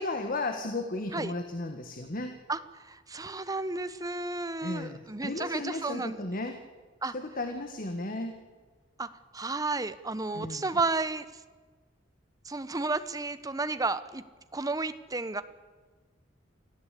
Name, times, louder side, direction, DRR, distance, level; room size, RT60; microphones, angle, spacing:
voice 1, 0.0-2.3 4.6-6.6 7.1-8.4 10.3-10.8, left 2 dB, 50° left, 6 dB, 1.7 m, -34 dB
voice 2, 2.5-6.2 7.0-7.1 9.0-11.3 12.4-14.2 14.5-15.4, right 3 dB, 20° right, 12 dB, 1.0 m, -32 dB
24.5 x 15.5 x 8.4 m, 1.4 s
head